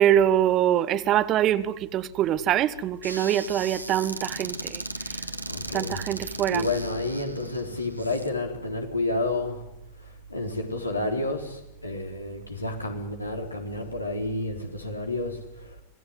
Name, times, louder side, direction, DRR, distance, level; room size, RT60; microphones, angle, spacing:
voice 1, 0.0-5.2 5.7-6.7, right 11 dB, 35° right, 1.2 m, -24 dB
Squeak / Cupboard open or close, 3.0-8.3, right 1 dB, 90° right, 2.0 m, -37 dB
voice 2, 5.5-6.0 6.5-9.6 10.0-15.8, left 2 dB, 85° left, 4.1 m, -30 dB
26.5 x 18.0 x 9.7 m
figure-of-eight pair, 90°, 0 cm